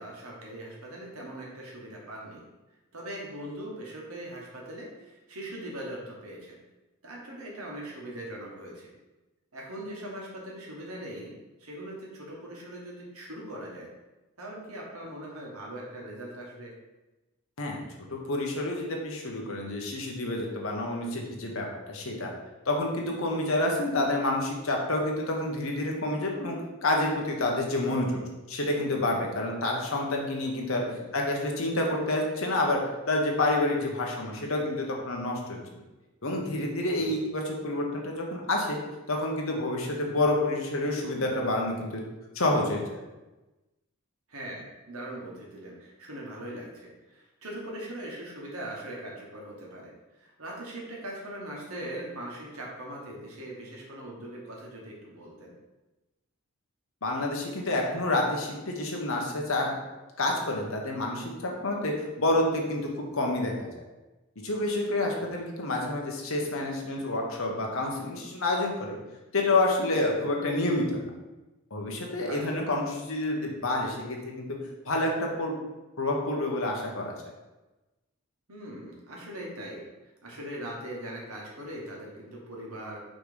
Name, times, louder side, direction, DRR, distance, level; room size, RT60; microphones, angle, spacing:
voice 1, 0.0-2.4 2.9-6.6 7.0-8.9 9.5-11.3 11.6-13.9 14.4-16.7 30.7-31.1 37.0-37.2 44.3-55.5 72.2-72.6 78.5-79.8 80.2-83.0, right 1 dB, 85° right, -3 dB, 1.7 m, -41 dB
voice 2, 18.1-22.3 22.6-28.1 28.5-30.8 31.1-32.8 33.1-35.6 36.2-38.8 39.1-42.0 42.3-43.0 57.0-59.7 60.2-63.7 64.4-69.0 69.3-71.1 71.7-74.4 74.8-75.6 76.0-77.1, left 2 dB, 70° left, 0 dB, 1.2 m, -28 dB
5.9 x 3.2 x 5.2 m, 1.1 s
head